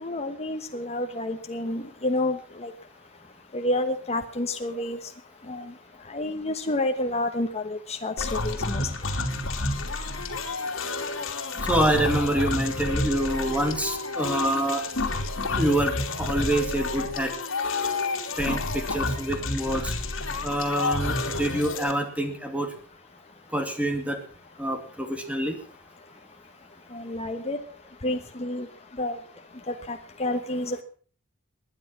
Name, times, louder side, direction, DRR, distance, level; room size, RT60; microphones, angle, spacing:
voice 1, 0.0-2.4 2.6-2.7 3.5-5.0 5.5-5.6 6.1-8.8 26.9-27.6 28.0-28.6 29.0-29.1 29.9-30.8, left 1 dB, 30° left, 5 dB, 1.2 m, -29 dB
sound 1, 8.2-21.9, left 2 dB, 70° left, 2.8 m, -29 dB
voice 2, 11.6-14.8 15.6-17.3 18.4-19.9 20.4-22.7 23.5-24.2 24.6-25.5, right 1 dB, 5° right, 5 dB, 2.5 m, -26 dB
21.0 x 10.5 x 6.0 m, 0.43 s
head